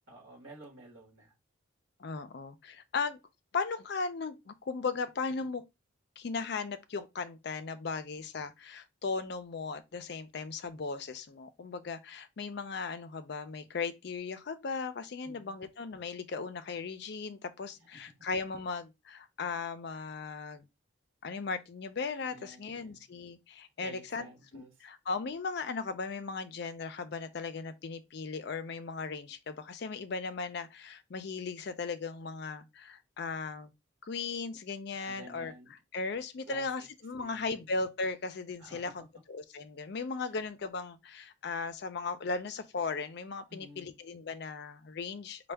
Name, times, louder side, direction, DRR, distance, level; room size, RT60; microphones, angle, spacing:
voice 1, 0.1-1.3 15.2-15.5 17.9-18.0 22.3-23.0 23.8-24.8 35.0-35.7 36.5-36.7 37.1-37.6 38.6-39.1 43.5-43.9, right 1 dB, 70° right, 1.1 m, -51 dB
voice 2, 2.0-3.2 3.5-5.6 6.2-20.7 21.2-24.3 24.5-33.7 34.0-35.5 35.9-45.5, left 4 dB, 55° left, 0.4 m, -37 dB
4.3 x 2.2 x 3.4 m
head